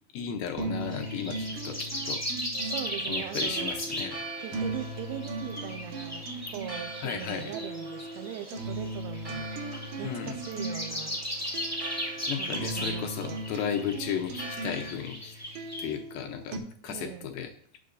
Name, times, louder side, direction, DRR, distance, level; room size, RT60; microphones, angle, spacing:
voice 1, 0.1-2.2 3.1-4.2 4.5-4.6 7.0-7.6 10.0-10.4 12.3-15.4 15.8-16.6 16.8-17.5, left 8 dB, 75° left, 5 dB, 2.3 m, -35 dB
sound 1, 0.6-16.6, right 2 dB, 70° right, 2.3 m, -38 dB
sound 2, 0.8-15.9, equal, 20° left, 0.3 m, -37 dB
Church bell, 2.5-14.9, right 3 dB, 25° right, 0.9 m, -45 dB
voice 2, 2.6-3.9 4.4-11.4 12.4-13.4 16.9-17.3, right 11 dB, 90° right, 8 dB, 2.7 m, -41 dB
17.5 x 5.9 x 2.6 m, 0.63 s
omnidirectional pair, 4.6 m